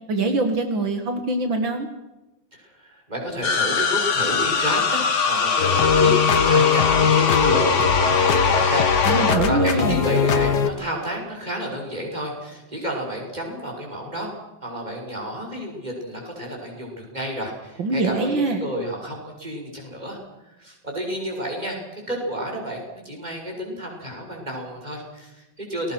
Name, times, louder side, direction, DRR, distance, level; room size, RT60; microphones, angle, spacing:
voice 1, 0.1-1.9 9.1-10.0 17.8-18.6, right 3 dB, 75° right, 6 dB, 2.8 m, -23 dB
voice 2, 2.5-14.3 14.6-25.9, equal, 20° right, 0 dB, 6.5 m, -31 dB
sound 1, 3.4-9.3, left 5 dB, 40° left, 1.8 m, -22 dB
sound 2, 5.6-10.7, left 6 dB, 60° left, 1.8 m, -20 dB
29.0 x 21.0 x 6.2 m, 0.99 s
omnidirectional pair, 2.1 m